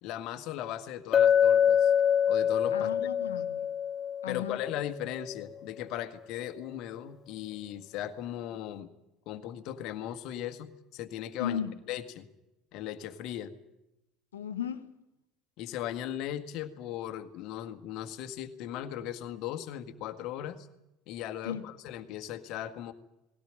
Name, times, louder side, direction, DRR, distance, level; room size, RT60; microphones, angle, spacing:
voice 1, 0.0-1.9 2.3-2.9 4.3-8.9 9.3-11.6 11.9-12.3 12.7-13.5 15.6-20.7 21.1-22.9, left 11 dB, 60° left, 7 dB, 1.8 m, -38 dB
Chink clink, 1.1-5.1, left 8 dB, 40° left, 0.7 m, -25 dB
voice 2, 2.7-3.7 4.2-4.6 11.4-11.7 14.3-14.9 21.4-21.6, left 9 dB, 85° left, 10 dB, 1.3 m, -35 dB
19.5 x 17.0 x 9.0 m, 0.93 s
hypercardioid pair, 75°, 0 cm